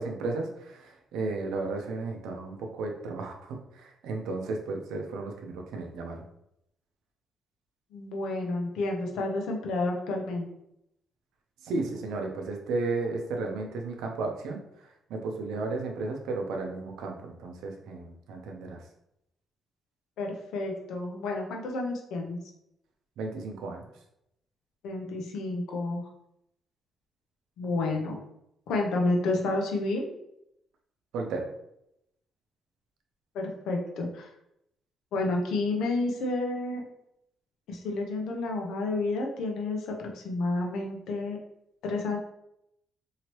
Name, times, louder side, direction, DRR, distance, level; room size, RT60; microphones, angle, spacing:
voice 1, 0.0-6.2 11.6-18.8 23.2-23.8 31.1-31.5, right 3 dB, 85° right, 2 dB, 0.5 m, -34 dB
voice 2, 7.9-10.5 20.2-22.4 24.8-26.0 27.6-28.2 28.7-30.1 33.3-34.3 35.1-36.8 37.7-41.4 41.8-42.2, left 2 dB, 85° left, 1 dB, 0.6 m, -30 dB
3.0 x 2.8 x 2.9 m, 0.81 s
cardioid pair, 90°, 0 cm